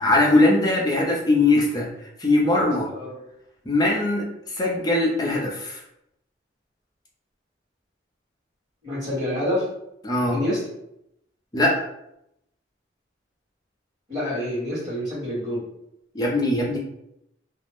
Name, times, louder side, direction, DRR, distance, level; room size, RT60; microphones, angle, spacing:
voice 1, 0.0-1.9 2.2-2.9 3.7-4.3 4.6-5.8 10.0-10.4 11.5-11.8 16.1-16.8, left 2 dB, 20° left, -2 dB, 0.5 m, -20 dB
voice 2, 2.5-3.1 8.8-9.6 10.3-10.6 14.1-15.6, left 1 dB, 35° right, -11 dB, 1.3 m, -27 dB
2.4 x 2.0 x 3.4 m, 0.81 s
head